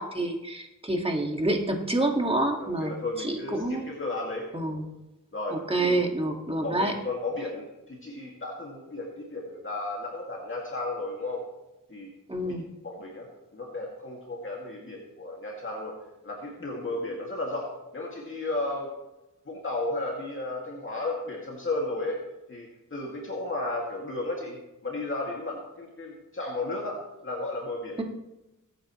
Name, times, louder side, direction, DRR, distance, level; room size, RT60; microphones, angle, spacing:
voice 1, 0.0-3.9 4.5-4.9 5.5-6.9 12.3-12.6, right 2 dB, 15° right, 2 dB, 1.8 m, -28 dB
voice 2, 2.6-4.5 5.3-6.0 6.6-11.4 11.9-12.1 12.4-12.5 12.8-13.3 13.5-15.9 16.2-18.9 19.5-22.2 22.5-28.0, left 2 dB, 40° left, -2 dB, 2.2 m, -34 dB
22.5 x 9.0 x 3.1 m, 0.96 s
wide cardioid pair, 100°, 32 cm